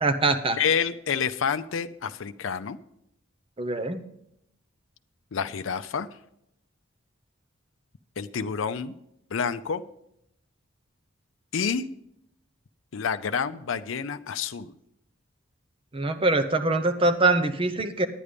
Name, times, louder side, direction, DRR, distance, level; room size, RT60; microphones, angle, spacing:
voice 1, 0.0-0.6 3.6-4.0 15.9-18.1, right 2 dB, 25° right, 9 dB, 0.7 m, -23 dB
voice 2, 0.6-2.8 5.3-6.1 8.2-8.9 9.3-9.8 11.5-11.9 12.9-14.7, left 6 dB, 75° left, 11 dB, 0.5 m, -28 dB
10.0 x 9.6 x 5.1 m, 0.77 s
head